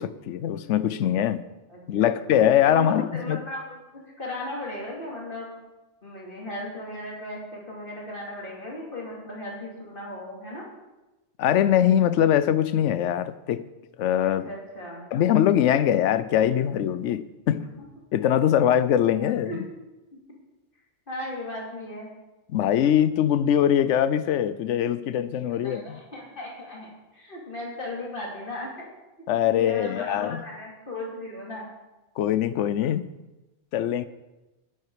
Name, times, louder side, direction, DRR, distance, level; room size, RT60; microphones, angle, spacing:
voice 1, 0.0-1.4 1.9-3.4 11.4-13.6 14.0-14.5 15.1-17.7 18.1-19.7 22.5-26.0 29.3-30.4 32.2-33.1 33.7-34.0, left 10 dB, 80° left, 14 dB, 0.9 m, -22 dB
voice 2, 1.7-2.1 2.7-5.6 6.0-10.6 14.2-15.1 19.5-19.6 20.1-20.2 21.1-22.1 25.5-28.9 29.3-31.7, left 1 dB, 45° left, -4 dB, 3.1 m, -36 dB
9.7 x 9.3 x 4.8 m, 1.1 s
omnidirectional pair, 1.2 m